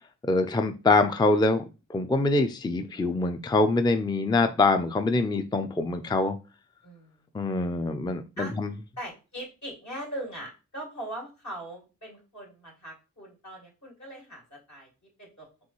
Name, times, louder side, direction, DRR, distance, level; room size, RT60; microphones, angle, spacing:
voice 1, 0.3-1.6 1.9-6.4 7.3-8.7, left 3 dB, 15° left, 7 dB, 0.4 m, -24 dB
voice 2, 6.8-7.2 8.4-8.5 9.0-14.9 15.2-15.5, right 1 dB, 65° left, -3 dB, 2.3 m, -40 dB
5.3 x 3.0 x 3.0 m, 0.30 s
wide cardioid pair, 75°, 30 cm